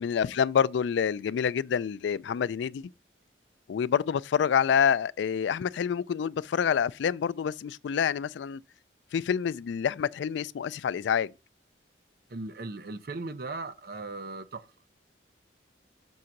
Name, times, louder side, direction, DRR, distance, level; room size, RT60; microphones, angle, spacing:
voice 1, 0.0-2.9 3.7-8.6 9.1-11.3, left 7 dB, 75° left, 0.3 m, -27 dB
voice 2, 12.3-14.7, right 3 dB, 55° right, 0.6 m, -38 dB
6.3 x 3.8 x 5.8 m
head